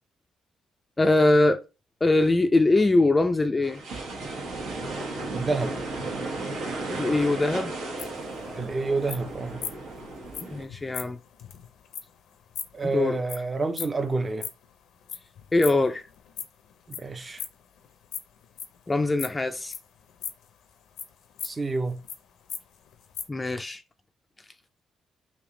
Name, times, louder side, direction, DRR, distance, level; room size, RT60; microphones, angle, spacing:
voice 1, 1.0-1.6 2.0-3.8 6.9-7.7 10.5-11.2 12.8-13.2 15.5-16.1 18.9-19.7 23.3-23.8, left 2 dB, 20° left, 0.3 m, -22 dB
sound 1, 3.6-10.6, right 2 dB, 80° right, 1.3 m, -34 dB
voice 2, 5.3-5.8 8.5-9.6 12.7-14.5 16.9-17.4 21.4-22.0, right 3 dB, 25° right, 0.6 m, -29 dB
sound 2, 8.0-14.7 15.0-17.0 17.3-18.8 19.2-20.5 21.0-22.2 22.5-22.6 22.9-23.3, left 8 dB, 80° left, 0.5 m, -38 dB
3.4 x 2.7 x 3.7 m
cardioid pair, 90°, 0 cm